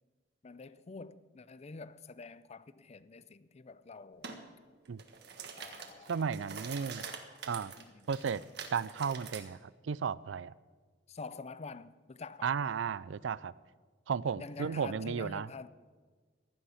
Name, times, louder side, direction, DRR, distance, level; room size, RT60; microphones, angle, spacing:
voice 1, 0.4-4.4 5.5-6.5 7.8-8.1 11.1-12.5 14.4-15.7, left 4 dB, 35° left, 0.5 m, -47 dB
sound 1, 4.2-4.4 4.9-9.4, right 6 dB, 60° right, 1.6 m, -45 dB
voice 2, 6.1-7.1 7.5-7.7 8.1-8.4 8.7-9.6 9.8-10.5 12.4-13.5 14.1-15.5, right 6 dB, 85° right, 0.4 m, -34 dB
16.0 x 11.5 x 5.7 m
head